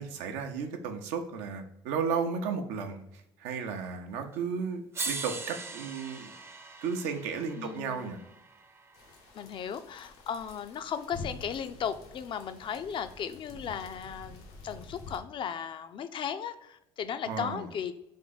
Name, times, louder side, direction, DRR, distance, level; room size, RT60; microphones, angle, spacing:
voice 1, 0.0-3.0 3.4-6.3 6.8-8.2 17.3-17.7, right 6 dB, 85° right, 5 dB, 0.6 m, -34 dB
sound 1, 4.3-4.4 4.9-9.1 10.5-10.6, right 3 dB, 20° right, 0.5 m, -40 dB
voice 2, 7.6-8.3 9.3-17.9, left 8 dB, 45° left, 11 dB, 0.4 m, -36 dB
sound 2, 8.9-15.2, left 3 dB, 85° left, 0.8 m, -48 dB
3.5 x 2.7 x 4.0 m, 0.84 s
supercardioid pair, 80°, 11 cm